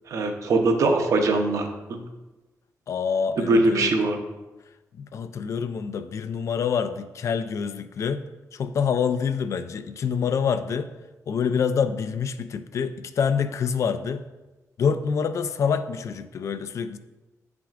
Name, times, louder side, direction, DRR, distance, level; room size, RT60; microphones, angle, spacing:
voice 1, 0.1-2.0 3.5-4.2, right 2 dB, 65° right, 4 dB, 0.8 m, -22 dB
voice 2, 2.9-3.9 5.0-8.2 8.5-10.9 11.3-14.2 14.8-17.0, left 6 dB, 55° left, 11 dB, 0.3 m, -26 dB
7.9 x 5.9 x 2.5 m, 1.1 s
wide cardioid pair, 160°, 6 cm